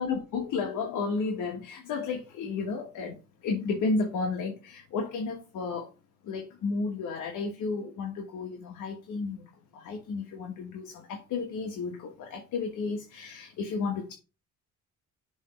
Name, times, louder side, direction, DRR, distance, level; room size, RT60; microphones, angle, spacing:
voice 1, 0.0-3.2 3.4-5.9 6.2-9.4 9.7-14.1, left 4 dB, 75° left, 1.4 m, -32 dB
7.0 x 3.3 x 5.8 m
cardioid pair, 115°, 30 cm